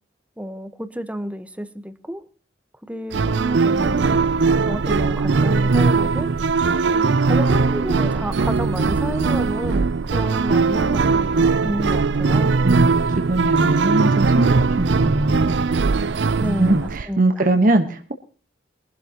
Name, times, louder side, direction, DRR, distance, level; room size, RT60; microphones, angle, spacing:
voice 1, 0.4-2.2 2.8-4.0 4.6-6.3 6.9-12.5 16.4-17.4, equal, 10° right, 1.1 m, -30 dB
sound 1, 3.1-17.0, right 4 dB, 80° right, 0.6 m, -19 dB
voice 2, 12.6-15.6 16.4-18.1, right 1 dB, 45° right, 1.2 m, -21 dB
22.5 x 11.5 x 2.9 m
head